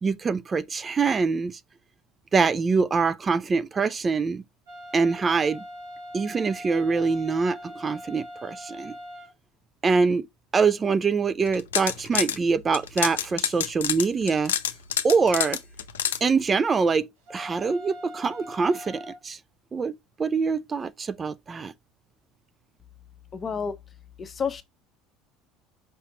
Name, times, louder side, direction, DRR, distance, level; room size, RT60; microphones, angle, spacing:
voice 1, 0.0-1.6 2.3-4.4 4.9-5.6 6.1-8.9 9.8-10.3 10.5-14.5 15.0-15.6 16.2-19.4 19.7-21.7, right 4 dB, 30° right, 0.5 m, -24 dB
sound 1, 4.7-9.3 17.3-19.2, left 1 dB, 80° right, 3.7 m, -41 dB
sound 2, 11.5-12.4 12.7-16.2, left 9 dB, 80° left, 0.6 m, -27 dB
voice 2, 23.3-23.7 24.2-24.6, left 6 dB, 30° left, 1.1 m, -29 dB
5.7 x 5.5 x 3.7 m
hypercardioid pair, 65°, 0 cm